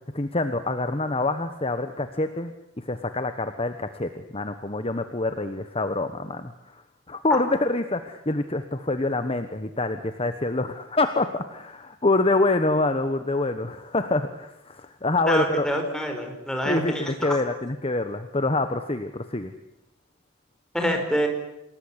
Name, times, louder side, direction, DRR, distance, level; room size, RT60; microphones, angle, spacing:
voice 1, 0.1-6.8 7.1-15.7 16.6-19.5, left 2 dB, 25° left, 9 dB, 1.2 m, -26 dB
voice 2, 15.3-17.3 20.7-21.3, equal, 5° left, 3 dB, 4.9 m, -26 dB
27.5 x 20.0 x 10.0 m, 0.88 s
head